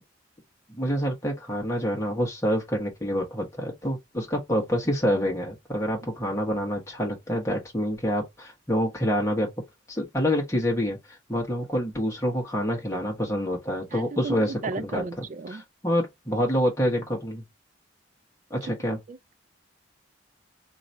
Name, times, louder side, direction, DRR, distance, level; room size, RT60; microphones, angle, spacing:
voice 1, 0.7-9.5 9.9-17.4 18.5-19.0, equal, 15° left, 1.2 m, -27 dB
voice 2, 13.9-15.6 18.9-19.3, right 4 dB, 40° right, 0.3 m, -35 dB
2.9 x 2.6 x 4.3 m
head